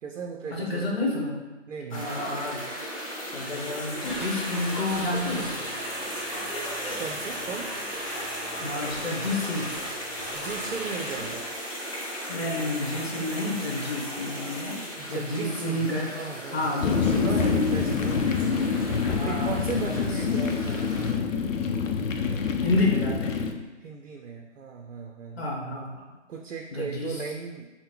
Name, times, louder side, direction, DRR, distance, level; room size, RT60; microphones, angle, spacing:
voice 1, 0.0-0.9 1.7-2.1 7.0-7.7 10.3-11.5 15.0-18.4 19.2-21.4 23.8-25.4 26.3-27.7, right 5 dB, 80° right, 2 dB, 0.6 m, -36 dB
voice 2, 0.5-1.4 1.9-2.6 3.3-5.5 8.6-9.7 12.3-14.8 15.1-16.1 16.5-17.6 19.0-20.4 22.6-23.5 25.4-26.0 26.7-27.2, left 2 dB, 55° left, -2 dB, 1.2 m, -30 dB
sound 1, 1.9-21.1, equal, 30° left, 0.5 m, -36 dB
sound 2, 3.9-11.5, right 1 dB, ahead, 0.9 m, -38 dB
sound 3, 16.8-23.5, left 5 dB, 85° left, 0.6 m, -26 dB
3.8 x 2.1 x 4.3 m, 1.2 s
hypercardioid pair, 170°, 38 cm